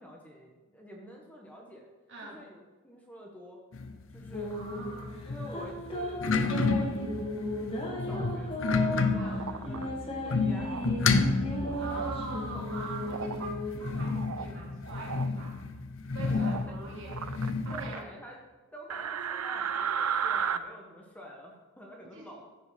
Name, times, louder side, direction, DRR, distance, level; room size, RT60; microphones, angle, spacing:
voice 1, 0.0-1.9 2.2-3.6 4.1-4.5 5.3-6.9 7.7-11.2 11.6-12.1 12.5-12.6 16.2-17.0 17.7-18.4 18.7-22.4, equal, 5° left, -1 dB, 1.4 m, -48 dB
voice 2, 2.1-2.4 4.4-5.1 9.2-9.4 11.8-15.6 16.1-17.1 17.6-18.0 22.1-22.3, right 3 dB, 55° right, -3 dB, 3.0 m, -43 dB
sound 1, 3.7-17.9, left 4 dB, 60° left, 0.7 m, -31 dB
sound 2, 4.3-14.1, equal, 25° left, 2.2 m, -36 dB
sound 3, 9.3-9.8 10.6-10.9 11.6-12.2 13.0-13.5 13.9-14.5 14.8-15.3 16.3-16.7 17.1-18.0 18.9-20.6, right 7 dB, 80° right, 0.6 m, -34 dB
14.5 x 5.4 x 5.8 m, 1.3 s
head